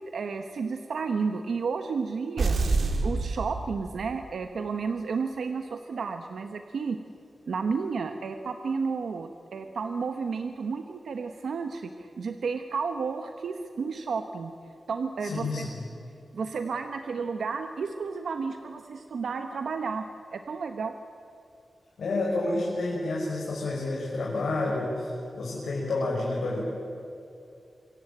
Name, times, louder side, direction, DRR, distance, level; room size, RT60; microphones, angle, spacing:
voice 1, 0.1-2.6 3.0-7.0 7.5-14.5 14.9-15.7 16.3-20.0 20.3-20.9, right 5 dB, 85° right, 6 dB, 1.2 m, -32 dB
sound 1, 2.4-4.2, right 3 dB, 60° right, 2.4 m, -27 dB
voice 2, 15.2-15.8 22.0-26.6, left 2 dB, 90° left, -4 dB, 6.1 m, -29 dB
26.5 x 24.0 x 9.0 m, 2.6 s
wide cardioid pair, 160°, 0 cm